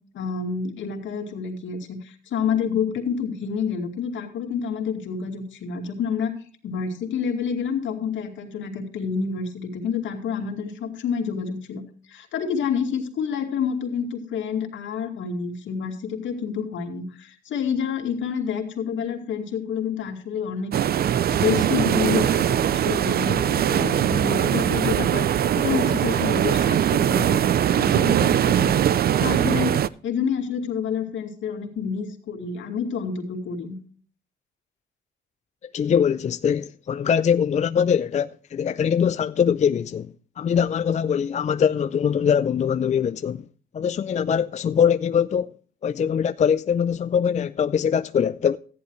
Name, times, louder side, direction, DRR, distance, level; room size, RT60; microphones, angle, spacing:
voice 1, 0.1-6.4 6.6-11.8 12.1-20.8 21.3-27.4 27.7-33.8, left 6 dB, 75° left, 2.5 m, -28 dB
sound 1, 20.7-29.9, right 10 dB, 50° right, 0.5 m, -21 dB
voice 2, 35.7-40.1 40.4-43.4 43.7-45.5 45.8-48.6, left 7 dB, 35° left, 0.4 m, -22 dB
14.0 x 10.5 x 3.1 m
cardioid pair, 90°, 20 cm